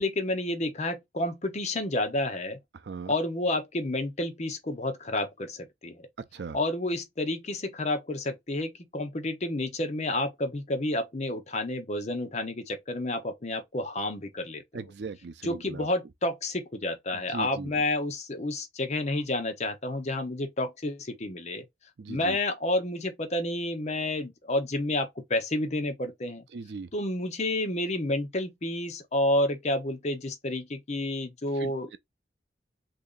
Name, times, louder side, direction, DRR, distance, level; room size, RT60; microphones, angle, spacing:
voice 1, 0.0-2.6 3.1-6.1 6.5-14.6 15.4-21.6 22.1-26.4 26.9-32.0, left 1 dB, 40° left, 0.8 m, -30 dB
voice 2, 2.7-3.1 6.2-6.6 14.7-15.9 17.1-17.8 22.0-22.4 26.5-26.9 31.5-32.0, right 4 dB, 70° right, 0.4 m, -39 dB
3.0 x 2.7 x 3.8 m
head